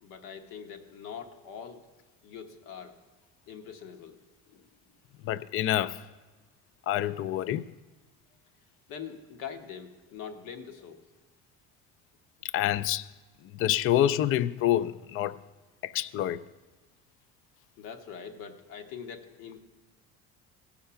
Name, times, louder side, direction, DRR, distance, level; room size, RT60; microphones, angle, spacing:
voice 1, 0.0-1.8 2.2-3.0 3.5-4.2 4.5-4.7 8.9-11.0 17.8-19.6, left 7 dB, 80° left, 1.2 m, -43 dB
voice 2, 5.2-6.0 6.9-7.7 12.4-13.1 13.5-15.4 15.8-16.4, left 12 dB, 45° left, 0.4 m, -27 dB
16.0 x 5.6 x 5.7 m
cardioid pair, 100°, 31 cm